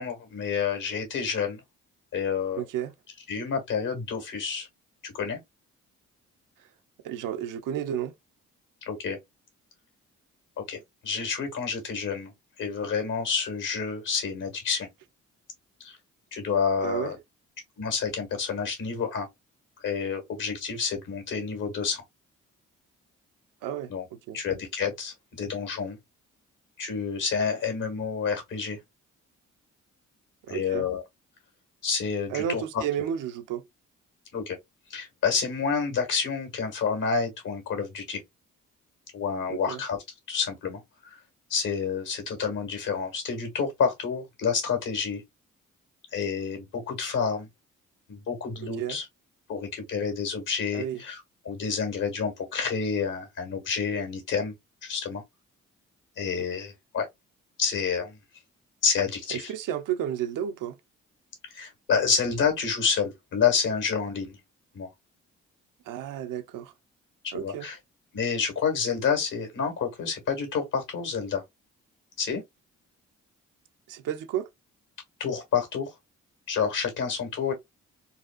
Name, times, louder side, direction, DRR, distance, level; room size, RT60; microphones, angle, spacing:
voice 1, 0.0-1.6 2.1-2.6 3.3-4.7 5.0-5.4 8.9-9.2 10.6-12.3 12.6-14.9 15.8-16.0 16.3-17.2 17.8-19.3 19.8-22.0 23.9-24.0 24.3-26.0 26.8-28.8 30.5-31.0 31.8-32.8 34.3-34.6 34.9-38.2 39.1-40.0 40.3-41.2 41.5-45.2 46.1-47.5 48.1-49.1 49.5-54.5 54.8-55.2 56.2-57.1 57.6-58.2 58.8-59.5 61.5-64.4 64.7-64.9 67.2-67.8 68.1-71.4 72.2-72.4 75.2-75.9 76.5-77.5, left 6 dB, 75° left, 1.8 m, -29 dB
voice 2, 2.6-2.9 6.6-6.7 7.0-8.1 16.8-17.1 23.6-24.4 30.5-30.9 32.3-33.6 39.5-39.8 48.6-49.0 50.7-51.0 59.3-60.8 65.9-66.7 67.3-67.7 73.9-74.5, right 10 dB, 80° right, 0.6 m, -32 dB
4.0 x 2.4 x 2.4 m
supercardioid pair, 55°, 32 cm